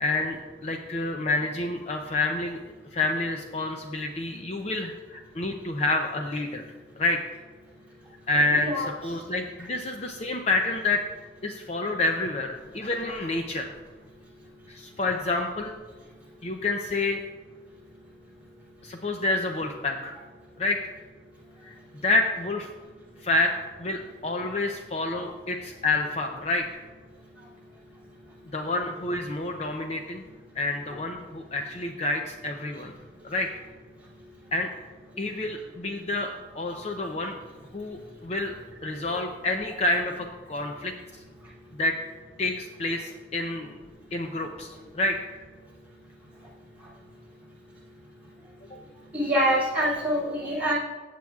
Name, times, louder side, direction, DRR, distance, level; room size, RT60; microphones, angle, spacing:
voice 1, 0.0-2.6 2.9-6.7 7.0-7.2 8.3-11.0 11.4-13.7 14.7-15.8 16.4-17.2 18.8-20.2 20.6-20.9 21.6-21.7 22.0-22.7 23.2-23.5 23.8-26.8 28.5-30.2 30.6-32.9 33.2-33.5 34.5-34.7 35.2-37.4 37.7-38.5 38.8-40.9 41.7-42.0 42.4-43.8 44.1-45.2, left 2 dB, 35° left, 3 dB, 0.5 m, -28 dB
voice 2, 8.5-8.9 49.1-50.7, equal, 5° right, -9 dB, 2.7 m, -25 dB
15.5 x 7.6 x 2.4 m, 1.4 s
head